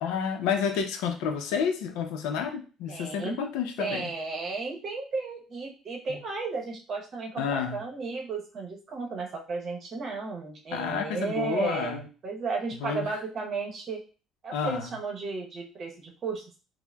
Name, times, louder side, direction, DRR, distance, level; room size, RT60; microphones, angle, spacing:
voice 1, 0.0-4.1 6.1-6.2 7.4-7.8 10.7-12.0 12.8-13.1 14.5-14.9, left 7 dB, 90° left, 5 dB, 0.5 m, -30 dB
voice 2, 2.9-3.4 3.8-14.0 14.4-16.6, right 4 dB, 40° right, 1 dB, 0.8 m, -34 dB
4.4 x 2.1 x 2.2 m, 0.35 s
cardioid pair, 130°, 0 cm